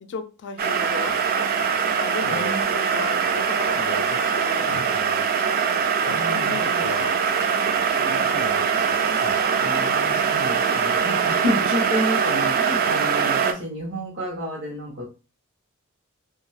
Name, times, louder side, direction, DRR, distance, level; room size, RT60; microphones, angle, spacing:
voice 1, 0.0-1.2 2.0-5.5 6.0-7.2 8.0-9.4, left 5 dB, 55° left, 0.4 m, -35 dB
sound 1, 0.6-13.5, right 6 dB, 45° right, 0.3 m, -22 dB
voice 2, 2.2-2.6 4.7-4.9 6.1-7.0 9.6-15.0, equal, 65° right, 0.7 m, -30 dB
2.6 x 2.2 x 3.1 m
head